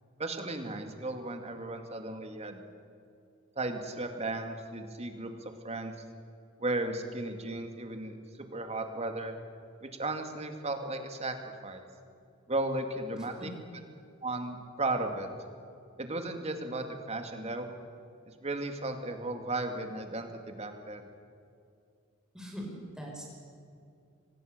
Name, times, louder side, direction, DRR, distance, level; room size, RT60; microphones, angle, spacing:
voice 1, 0.2-2.6 3.6-5.9 6.6-8.1 8.5-9.3 9.8-11.8 12.5-13.5 14.2-15.3 16.0-17.7 18.4-21.0, right 2 dB, 30° right, 5 dB, 2.4 m, -35 dB
voice 2, 22.3-23.2, equal, 5° right, -2 dB, 5.8 m, -41 dB
25.0 x 20.0 x 6.8 m, 2.4 s
head